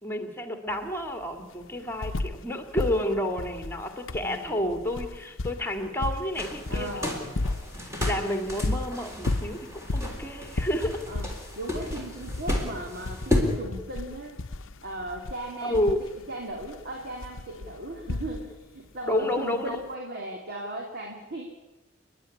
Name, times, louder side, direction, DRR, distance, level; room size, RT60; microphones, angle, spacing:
voice 1, 0.0-7.5 8.0-11.1 15.6-16.0 19.1-19.8, left 1 dB, 10° left, 7 dB, 2.2 m, -30 dB
sound 1, 0.7-0.8 1.0-2.5 2.7-18.7 19.8-19.9, left 2 dB, 60° left, 0.8 m, -34 dB
voice 2, 4.2-4.7 6.7-7.3 11.1-11.3 11.6-14.4 14.8-15.8 16.3-21.4, right 1 dB, 50° right, 1 dB, 2.7 m, -37 dB
sound 2, 6.4-13.6, left 1 dB, 15° right, 3.6 m, -33 dB
29.0 x 11.0 x 9.9 m, 1.1 s
head